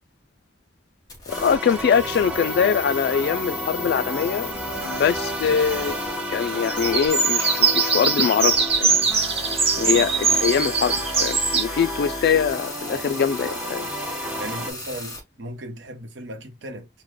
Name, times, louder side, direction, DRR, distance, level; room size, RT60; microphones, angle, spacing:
sound 1, 1.1-15.2, left 3 dB, 20° left, 1.2 m, -36 dB
voice 1, 1.3-4.5 4.8-5.9 6.3-9.0 9.8-13.9, left 7 dB, 60° left, 0.3 m, -23 dB
sound 2, 1.3-14.7, equal, 5° right, 0.7 m, -32 dB
sound 3, 5.0-6.0 6.3-11.6, right 5 dB, 35° right, 0.9 m, -22 dB
voice 2, 9.7-10.2 14.4-16.9, right 1 dB, 85° right, 0.8 m, -36 dB
3.2 x 2.1 x 3.6 m
head